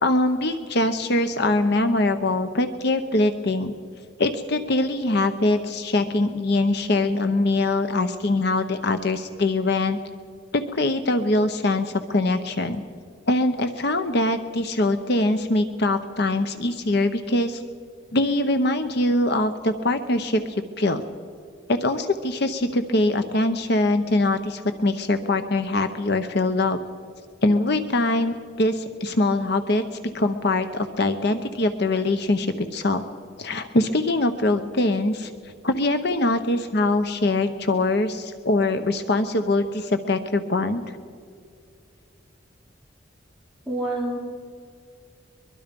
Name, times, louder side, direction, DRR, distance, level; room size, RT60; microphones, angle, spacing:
voice 1, 0.0-3.7 4.2-10.0 10.5-12.8 13.3-17.6 18.1-21.0 21.7-26.8 27.4-29.8 30.1-33.0 33.4-41.0, left 2 dB, 55° left, 8 dB, 0.8 m, -23 dB
voice 2, 43.7-44.2, right 1 dB, ahead, -3 dB, 4.2 m, -27 dB
23.0 x 22.5 x 5.3 m, 2.3 s
head